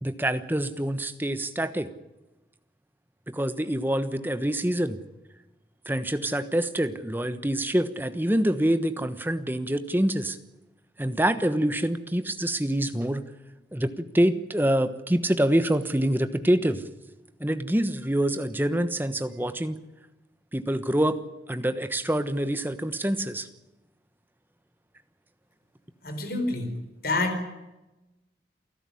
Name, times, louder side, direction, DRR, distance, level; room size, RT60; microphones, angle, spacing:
voice 1, 0.0-1.9 3.3-5.0 5.9-10.4 11.0-13.3 13.7-16.8 17.4-19.8 20.5-21.2 21.5-23.5, right 1 dB, 10° right, 11 dB, 1.2 m, -26 dB
voice 2, 26.0-26.7 27.0-27.4, left 2 dB, 55° left, 6 dB, 4.8 m, -27 dB
29.0 x 12.0 x 10.0 m, 1.0 s
head